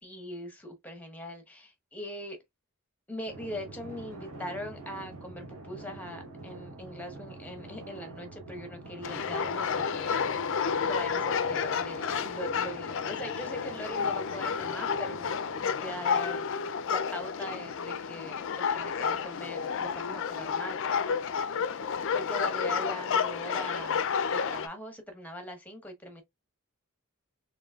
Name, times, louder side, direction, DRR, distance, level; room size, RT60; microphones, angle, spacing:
voice 1, 0.0-2.4 3.1-10.3 10.8-15.3 15.6-21.2 22.1-24.0 24.3-26.2, left 1 dB, 5° left, 1.0 m, -41 dB
Drum, 3.3-16.3, right 2 dB, 75° right, 1.0 m, -46 dB
sound 1, 9.0-24.7, left 6 dB, 60° left, 0.4 m, -31 dB
3.8 x 2.7 x 2.3 m
head